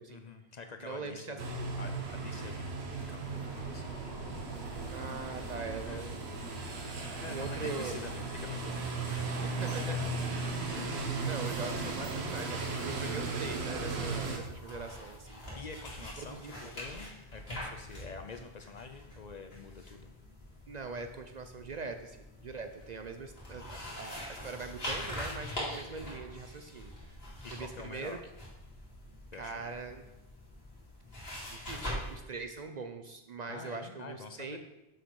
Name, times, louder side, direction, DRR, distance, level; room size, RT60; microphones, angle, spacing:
voice 1, 0.1-1.4 1.8-3.9 5.8-6.1 7.2-10.1 10.6-10.9 15.5-20.1 27.4-28.2 29.3-29.6 33.5-34.6, left 4 dB, 50° left, 6 dB, 0.6 m, -47 dB
voice 2, 0.8-1.7 4.9-6.3 7.3-8.0 9.6-10.0 10.8-15.5 16.2-16.7 20.7-26.9 27.5-28.2 29.3-30.0 31.5-34.6, right 4 dB, 50° right, 7 dB, 0.6 m, -42 dB
sound 1, 1.4-14.4, right 3 dB, 90° right, 1.3 m, -36 dB
sound 2, 2.9-15.5, equal, 20° right, 3.2 m, -52 dB
Turning Pages and Flipping through Pages, 13.4-32.2, left 1 dB, 70° left, 2.6 m, -44 dB
6.7 x 6.4 x 4.7 m, 0.96 s
omnidirectional pair, 1.0 m